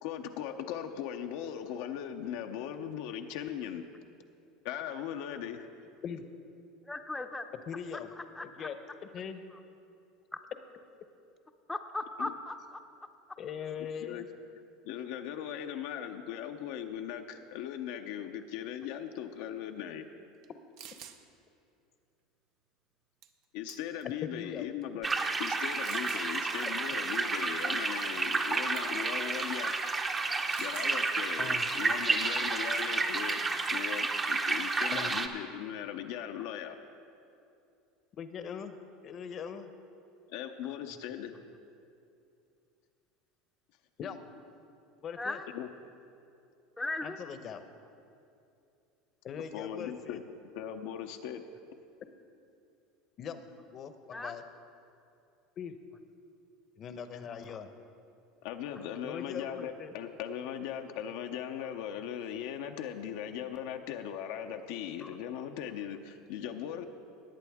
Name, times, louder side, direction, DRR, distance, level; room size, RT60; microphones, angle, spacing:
voice 1, 0.0-3.9 4.6-5.7 12.2-12.3 14.0-14.2 14.8-20.1 23.5-25.1 25.4-29.7 30.6-33.4 33.7-36.8 40.3-41.3 45.5-45.7 49.4-50.2 50.5-51.4 58.4-66.8, left 9 dB, 70° left, 5 dB, 0.6 m, -39 dB
voice 2, 6.9-7.5 8.4-8.7 11.7-12.5 45.2-45.4 46.8-47.2 54.1-54.3 57.5-57.6, left 2 dB, 10° left, 5 dB, 0.6 m, -37 dB
voice 3, 7.7-8.1 8.4-8.8 9.0-9.4 13.4-14.3 24.2-24.7 31.4-31.7 34.9-35.1 38.2-38.7 39.0-39.7 44.0-44.2 45.0-45.4 47.0-47.6 49.2-50.2 53.2-53.4 53.7-54.4 55.6-55.8 56.8-57.7 59.0-59.9, left 7 dB, 45° left, 9 dB, 0.8 m, -41 dB
sound 1, 20.4-20.5 20.8-21.2 23.2-23.4 23.7-24.1 24.8-24.9 25.8-26.3 28.2-28.5 28.8-29.0 30.5-30.9 32.8-33.0 33.3-33.6, right 9 dB, 65° right, 0.7 m, -48 dB
sound 2, 25.0-35.3, right 3 dB, 25° right, 0.8 m, -31 dB
19.0 x 8.2 x 3.6 m, 2.6 s
supercardioid pair, 100°, 0 cm